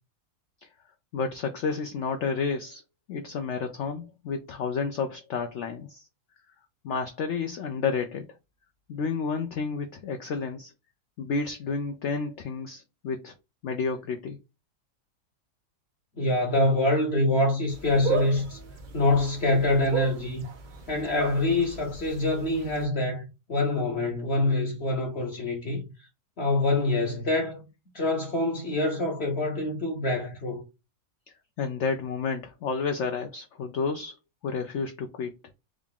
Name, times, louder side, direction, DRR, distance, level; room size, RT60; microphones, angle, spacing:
voice 1, 1.1-2.8 3.1-6.1 6.8-8.3 8.9-10.7 11.2-13.3 13.6-14.4 31.6-34.2 34.4-35.3, left 5 dB, 75° left, 0.6 m, -30 dB
voice 2, 16.2-18.6 18.9-20.4 20.9-25.8 26.4-27.7 27.9-30.6, left 2 dB, 50° left, 0.9 m, -25 dB
sound 1, 17.7-22.8, right 6 dB, 85° right, 0.4 m, -35 dB
3.7 x 2.3 x 3.6 m
omnidirectional pair, 1.7 m